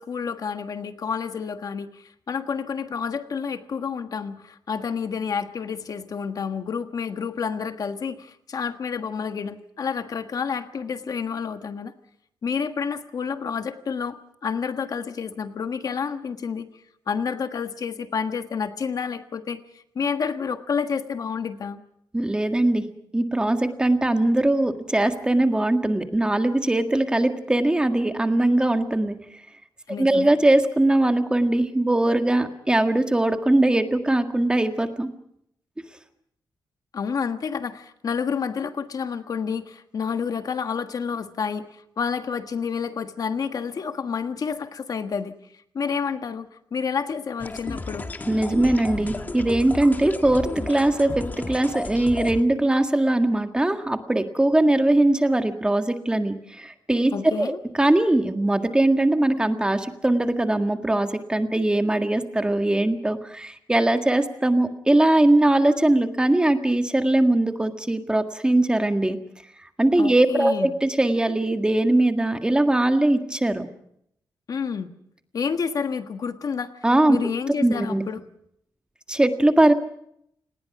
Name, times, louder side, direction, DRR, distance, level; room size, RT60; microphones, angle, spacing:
voice 1, 0.0-11.9 12.4-16.7 17.1-19.6 19.9-21.8 29.9-30.3 36.9-41.7 42.0-45.4 45.7-48.1 57.1-57.6 70.0-70.7 74.5-74.9 75.3-76.7 77.1-78.2, left 6 dB, 55° left, 8 dB, 1.4 m, -29 dB
voice 2, 22.1-22.8 23.1-29.2 30.0-35.1 48.3-51.1 51.5-57.1 57.4-57.5 57.8-69.2 69.8-73.7 76.8-77.2 77.6-78.0 79.1-79.7, right 1 dB, 10° right, 6 dB, 1.7 m, -21 dB
sound 1, 47.4-52.4, left 3 dB, 25° left, 1.5 m, -33 dB
29.0 x 19.5 x 6.0 m, 0.73 s
wide cardioid pair, 140°, 7 cm